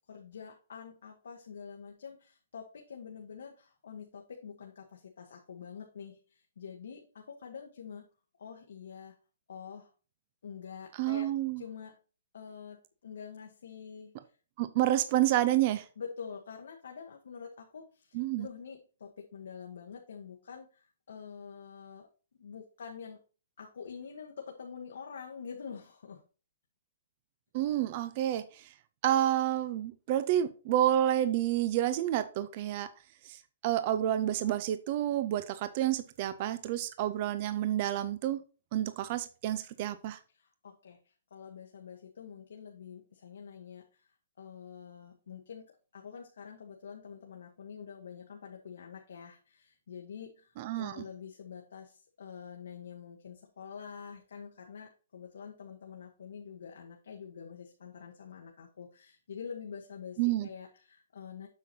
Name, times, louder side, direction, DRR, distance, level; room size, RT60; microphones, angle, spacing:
voice 1, 0.1-8.0 8.4-9.1 9.5-9.9 10.4-11.3 11.6-12.0 12.3-14.1 16.0-22.1 22.4-23.2 23.6-26.2 40.3-44.1 44.4-45.7 45.9-61.5, left 6 dB, 80° left, 1.4 m, -46 dB
voice 2, 11.0-11.6 14.6-15.8 18.1-18.5 27.5-28.7 29.0-32.9 33.2-38.4 38.7-40.2 50.6-51.0 60.2-60.5, right 12 dB, 35° right, 0.6 m, -29 dB
8.1 x 5.8 x 2.8 m
hypercardioid pair, 155°, 0 cm